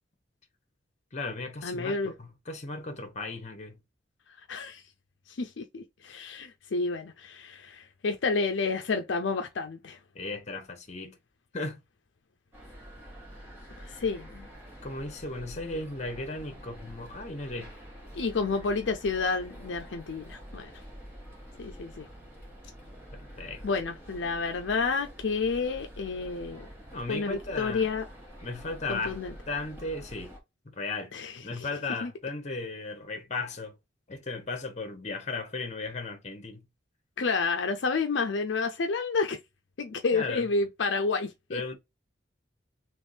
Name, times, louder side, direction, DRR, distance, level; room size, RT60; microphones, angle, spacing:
voice 1, 1.1-3.8 10.1-11.2 11.5-11.8 14.8-17.7 23.1-23.6 26.9-27.9 28.4-29.2 29.5-30.3 30.7-31.1 31.4-33.7 34.1-36.6 40.1-40.5 41.5-41.7, left 3 dB, 40° left, 1.0 m, -36 dB
voice 2, 1.6-2.1 4.5-4.8 5.4-10.0 13.8-14.5 18.1-20.7 21.6-22.1 23.6-26.7 27.1-28.0 28.9-29.3 31.1-31.7 32.0-32.1 37.2-39.4 39.8-41.7, left 4 dB, 75° left, 0.5 m, -30 dB
sound 1, 12.5-30.4, equal, 10° right, 1.4 m, -47 dB
3.5 x 3.0 x 2.6 m
head